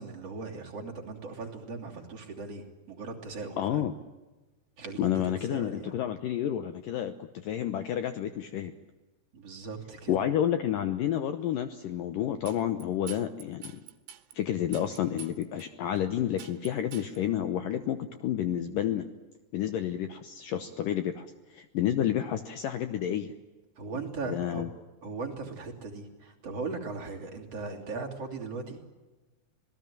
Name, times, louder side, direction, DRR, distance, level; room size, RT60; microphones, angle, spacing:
voice 1, 0.0-3.8 4.8-5.9 9.3-10.1 14.9-15.1 23.8-24.7 25.0-28.8, right 4 dB, 40° right, 0 dB, 3.7 m, -38 dB
voice 2, 3.6-3.9 5.0-8.7 10.1-13.7 14.4-19.1 19.5-23.3 24.3-24.7, left 10 dB, 70° left, 9 dB, 2.2 m, -30 dB
sound 1, 12.5-14.3 14.7-15.7 16.0-16.1 16.4-17.2, right 10 dB, 85° right, 3.3 m, -46 dB
26.5 x 18.5 x 9.1 m, 1.2 s
omnidirectional pair, 4.8 m